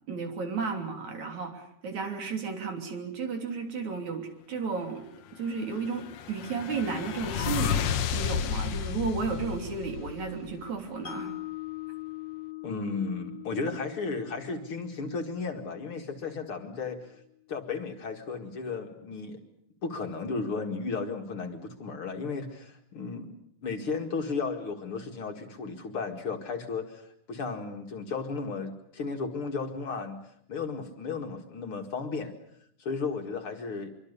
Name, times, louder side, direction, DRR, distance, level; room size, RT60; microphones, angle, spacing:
voice 1, 0.1-5.0 5.4-11.3, right 5 dB, 70° right, 4 dB, 4.5 m, -33 dB
sound 1, 5.7-10.6, left 8 dB, 65° left, 2.2 m, -32 dB
Mallet percussion, 11.1-17.2, left 16 dB, 85° left, 3.3 m, -43 dB
voice 2, 12.6-17.0 17.5-19.4 19.8-27.0 27.3-30.2 30.5-32.3 32.8-33.9, left 4 dB, 50° left, 4 dB, 2.6 m, -34 dB
25.0 x 24.5 x 6.9 m, 0.72 s
omnidirectional pair, 3.5 m